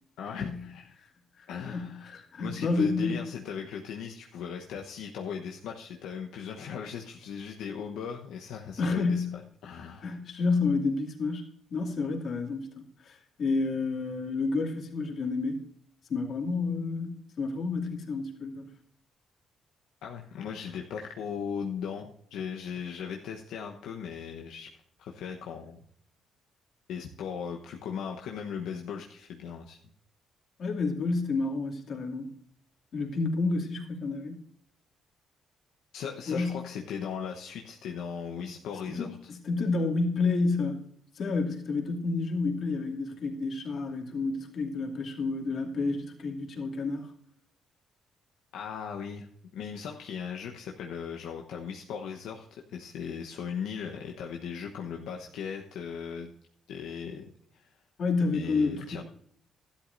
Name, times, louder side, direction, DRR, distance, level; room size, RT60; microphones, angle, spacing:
voice 1, 0.2-0.9 1.5-2.1 2.4-10.2 20.0-24.7 25.0-25.8 26.9-29.8 35.9-39.2 48.5-49.3 49.5-56.3 56.7-57.2 57.5-57.7 58.3-59.0, left 7 dB, 85° left, 1 dB, 1.0 m, -38 dB
voice 2, 1.4-3.2 8.8-9.3 10.0-11.5 11.7-15.6 16.1-18.7 30.6-32.3 32.9-34.4 36.3-36.6 38.9-40.8 41.1-47.1 58.0-59.0, left 3 dB, 55° left, 1 dB, 2.4 m, -30 dB
13.0 x 11.5 x 2.6 m, 0.63 s
cardioid pair, 90°, 0 cm